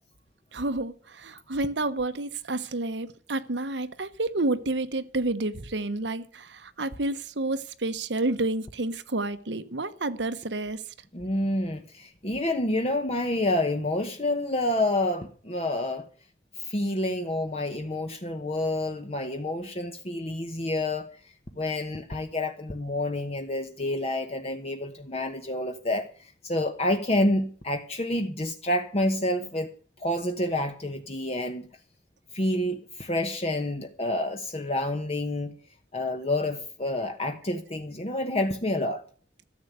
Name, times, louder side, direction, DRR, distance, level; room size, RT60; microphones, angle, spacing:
voice 1, 0.5-10.8, right 2 dB, 85° right, 1.2 m, -30 dB
voice 2, 11.1-16.0 16.6-21.1 21.5-29.7 30.0-31.7 32.3-35.5 35.9-39.0, left 1 dB, 35° left, 1.0 m, -28 dB
13.5 x 8.1 x 8.1 m
head